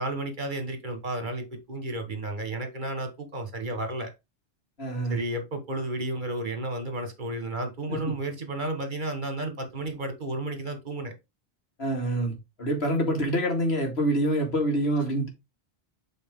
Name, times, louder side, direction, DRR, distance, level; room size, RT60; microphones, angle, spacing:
voice 1, 0.0-4.1 5.1-11.1, right 1 dB, 50° right, 1.5 m, -32 dB
voice 2, 4.8-5.2 7.9-8.0 11.8-15.3, right 1 dB, 90° left, 2.5 m, -26 dB
7.8 x 4.1 x 3.7 m
omnidirectional pair, 1.0 m